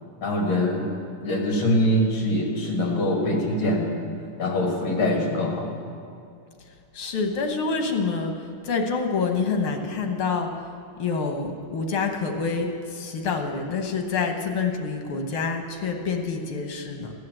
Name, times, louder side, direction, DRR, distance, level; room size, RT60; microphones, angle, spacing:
voice 1, 0.2-0.9 1.2-4.0 4.4-5.7, left 1 dB, 70° left, 0 dB, 3.1 m, -23 dB
voice 2, 6.9-8.3 8.6-10.5 11.0-17.1, left 4 dB, 90° left, 4 dB, 2.2 m, -27 dB
15.0 x 9.6 x 7.6 m, 2.5 s
omnidirectional pair, 2.3 m